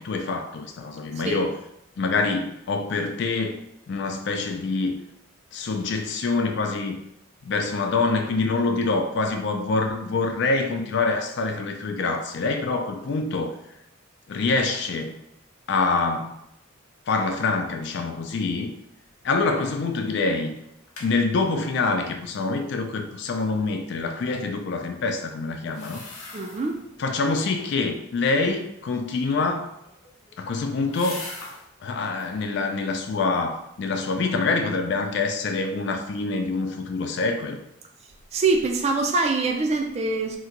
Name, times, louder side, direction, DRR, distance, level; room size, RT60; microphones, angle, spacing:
voice 1, 0.0-1.5 2.0-3.6 3.9-5.0 5.5-7.0 7.4-13.6 14.3-15.2 15.7-16.4 17.1-18.7 19.2-20.6 21.0-26.0 27.0-29.7 30.4-31.2 31.8-37.6, left 3 dB, 55° left, 5 dB, 0.3 m, -25 dB
sound 1, 19.5-19.9 20.2-20.3 20.6-21.1 25.6-26.8 27.2-27.7 29.7-31.7 32.1-32.5 33.0-33.6 34.0-34.1, left 3 dB, 90° left, 0.7 m, -42 dB
voice 2, 26.3-26.8 38.3-40.4, right 3 dB, 30° right, 3 dB, 0.3 m, -24 dB
2.8 x 2.2 x 3.7 m, 0.80 s
head